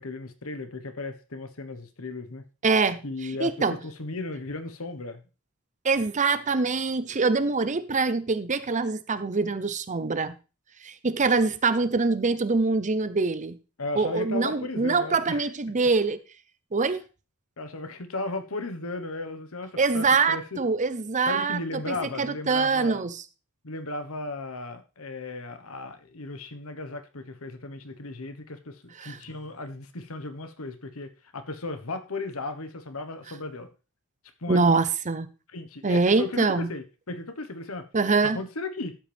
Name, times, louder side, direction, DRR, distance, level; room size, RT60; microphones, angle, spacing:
voice 1, 0.0-2.4 3.0-5.2 13.8-15.5 17.6-20.6 21.3-23.0 23.6-33.7 34.4-34.7 35.5-37.9 38.3-39.0, left 2 dB, 75° left, 1.3 m, -35 dB
voice 2, 2.6-3.0 3.4-3.8 5.8-10.3 10.8-13.6 14.0-16.2 16.7-17.0 19.8-21.6 21.9-23.2 29.0-29.2 34.5-35.3 35.8-36.7 37.9-38.4, right 4 dB, 35° right, 0.7 m, -24 dB
12.5 x 7.8 x 3.5 m
head